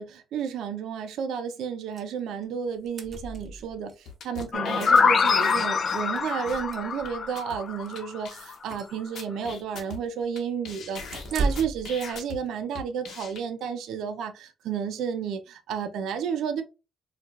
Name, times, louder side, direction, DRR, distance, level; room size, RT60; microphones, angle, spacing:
voice 1, 0.0-16.6, right 7 dB, 80° right, 0.5 m, -32 dB
sound 1, 2.0-2.1 2.4-2.5 2.7-4.0 5.2-5.3 5.7-5.8 6.3-7.3 7.8-8.0 8.4-9.0 11.1-11.9, right 3 dB, 45° right, 0.7 m, -34 dB
sound 2, 4.1-6.2 6.5-6.6 7.1-7.2 7.4-7.6 8.0-8.1 8.2-8.8 9.2-10.4 10.6-12.4 12.7-13.4, left 5 dB, 70° left, 1.0 m, -41 dB
sound 3, 4.5-8.3, left 5 dB, 45° left, 0.3 m, -24 dB
4.5 x 2.4 x 2.3 m
cardioid pair, 90°, 0 cm